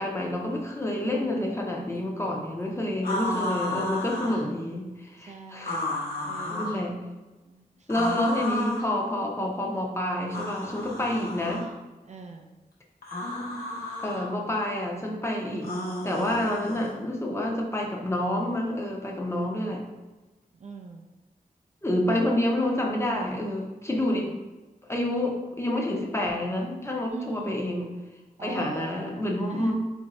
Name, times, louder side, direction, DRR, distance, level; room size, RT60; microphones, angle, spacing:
voice 1, 0.0-5.9 6.5-7.0 7.9-11.7 14.0-15.7 16.0-19.8 21.8-24.3 24.9-27.9 28.4-29.8, left 1 dB, 15° left, -1 dB, 0.6 m, -28 dB
sound 1, 3.0-4.4 5.6-6.8 7.9-8.9 10.3-11.7 13.0-14.2 15.6-16.9, left 1 dB, 75° left, 0.9 m, -32 dB
voice 2, 5.3-6.0 6.2-7.0 7.4-8.2 11.3-11.6 12.1-12.5 20.6-21.1 24.1-24.4 27.1-27.6 28.4-29.8, right 3 dB, 50° right, 3 dB, 0.4 m, -42 dB
3.1 x 2.6 x 4.0 m, 1.1 s
wide cardioid pair, 95°, 15 cm